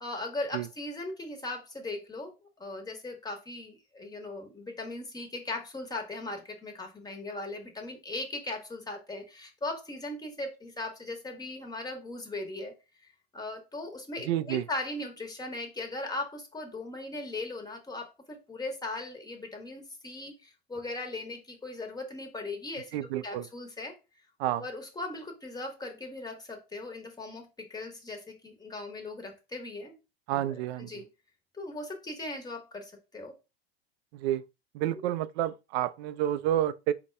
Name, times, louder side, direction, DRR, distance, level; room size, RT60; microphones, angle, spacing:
voice 1, 0.0-12.7 13.0-24.0 24.6-30.0 30.3-31.1 31.5-33.4, left 2 dB, 10° left, 1.1 m, -39 dB
voice 2, 14.3-14.6 22.9-23.5 24.4-24.6 30.3-30.9 34.1-34.4 34.7-36.9, right 12 dB, 70° right, 0.5 m, -29 dB
4.1 x 2.2 x 4.4 m
supercardioid pair, 110°, 33 cm